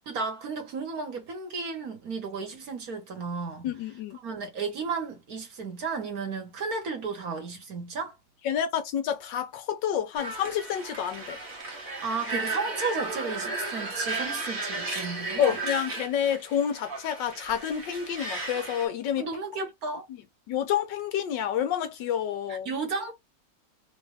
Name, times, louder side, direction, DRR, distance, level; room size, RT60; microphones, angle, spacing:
voice 1, 0.0-3.7 4.2-8.2 12.0-15.5 19.2-20.0 22.6-23.1, right 4 dB, 55° right, 1.8 m, -33 dB
voice 2, 3.6-4.2 8.4-11.4 15.4-19.3 20.5-22.7, left 9 dB, 85° left, 1.5 m, -29 dB
sound 1, 10.2-18.9, right 3 dB, 35° right, 1.2 m, -35 dB
3.9 x 2.6 x 3.3 m
omnidirectional pair, 1.9 m